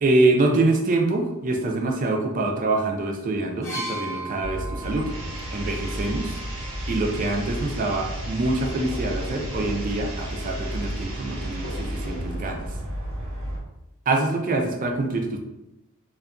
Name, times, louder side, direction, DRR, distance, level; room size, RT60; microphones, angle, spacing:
voice 1, 0.0-5.1 5.5-6.4 6.9-12.6 14.1-15.4, right 2 dB, 40° right, 3 dB, 0.4 m, -25 dB
sound 1, 3.6-7.4 8.5-8.6, right 1 dB, 15° left, 0.8 m, -38 dB
sound 2, 4.4-13.6, equal, 90° right, 0.7 m, -32 dB
sound 3, 4.9-5.7 8.6-10.0 11.6-12.8, equal, 55° left, 0.6 m, -40 dB
2.7 x 2.2 x 2.4 m, 0.92 s
head